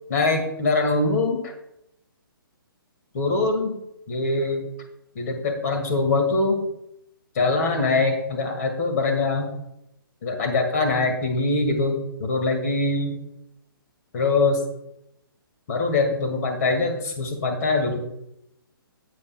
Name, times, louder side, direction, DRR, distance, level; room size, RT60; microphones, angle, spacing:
voice 1, 0.1-1.5 3.1-3.8 4.1-4.7 5.2-6.6 7.4-9.5 10.2-13.2 14.1-14.6 15.7-18.0, left 3 dB, 45° left, 3 dB, 2.1 m, -23 dB
13.0 x 7.8 x 2.3 m, 0.81 s
figure-of-eight pair, 135°, 12 cm